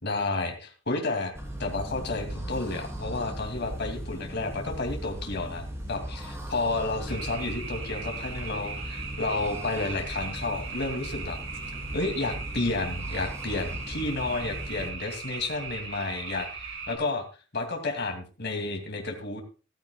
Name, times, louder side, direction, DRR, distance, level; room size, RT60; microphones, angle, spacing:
voice 1, 0.0-1.3 1.6-11.4 11.9-17.2 17.5-19.4, left 2 dB, 60° left, 3 dB, 2.5 m, -31 dB
sound 1, 1.3-14.9, equal, 15° right, 3.1 m, -38 dB
sound 2, 7.1-17.0, right 5 dB, 70° right, 6.2 m, -39 dB
14.5 x 13.5 x 2.3 m, 0.34 s
head